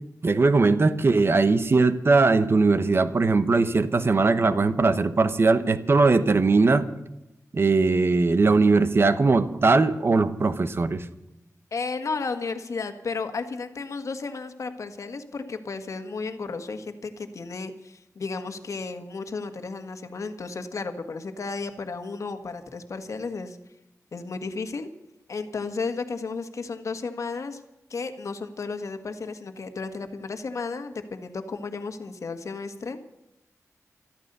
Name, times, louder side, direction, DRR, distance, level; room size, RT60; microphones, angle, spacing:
voice 1, 0.2-6.9 7.5-11.1, right 3 dB, 45° right, 12 dB, 1.0 m, -20 dB
voice 2, 11.7-23.6 24.1-24.9 25.3-27.6 27.9-33.1, left 4 dB, 65° left, 7 dB, 1.6 m, -33 dB
13.5 x 13.5 x 6.8 m, 0.94 s
wide cardioid pair, 125°, 6 cm